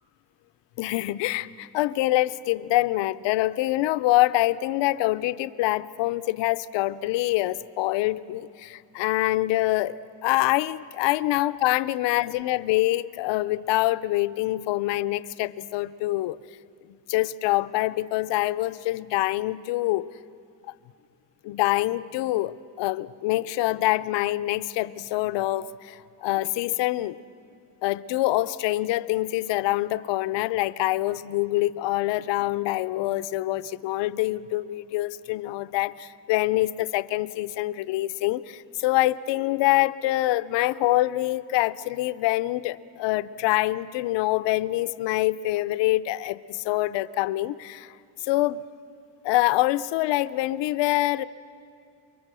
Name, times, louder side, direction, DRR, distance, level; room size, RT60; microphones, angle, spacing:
voice 1, 0.8-10.0 10.2-16.4 17.1-20.1 21.4-27.2 27.8-47.9 48.2-48.6 49.2-51.2, left 17 dB, 70° left, 14 dB, 0.7 m, -25 dB
29.5 x 23.0 x 6.2 m, 2.4 s
cardioid pair, 180°, 45 cm